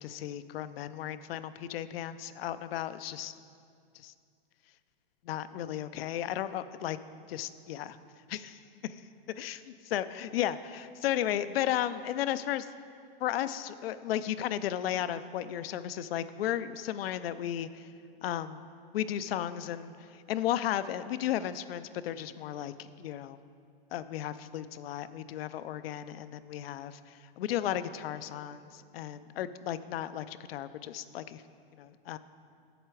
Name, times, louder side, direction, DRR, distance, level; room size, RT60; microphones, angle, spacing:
voice 1, 0.0-3.3 3.9-4.1 5.2-7.0 7.3-8.0 8.3-9.0 9.4-12.7 13.2-17.9 18.2-18.6 18.9-23.4 23.9-31.4 31.8-32.2, left 11 dB, 75° left, 13 dB, 0.5 m, -34 dB
7.9 x 7.5 x 4.7 m, 2.3 s
supercardioid pair, 155°, 30 cm